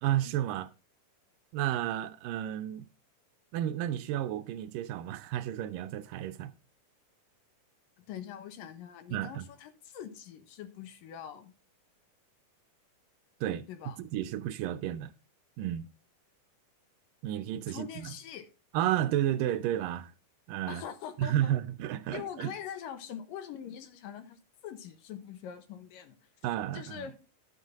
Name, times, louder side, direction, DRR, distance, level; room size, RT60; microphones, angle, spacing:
voice 1, 0.0-0.7 1.5-2.9 3.5-6.5 9.1-9.5 13.4-15.1 15.6-15.9 17.2-18.1 18.7-20.1 20.5-20.8 21.2-22.5 26.4-27.1, right 12 dB, 80° right, 2.3 m, -32 dB
voice 2, 8.0-11.5 13.7-14.0 17.7-18.5 20.7-21.5 22.1-26.2 26.7-27.2, left 9 dB, 75° left, 2.8 m, -43 dB
11.5 x 8.3 x 3.6 m
omnidirectional pair, 4.0 m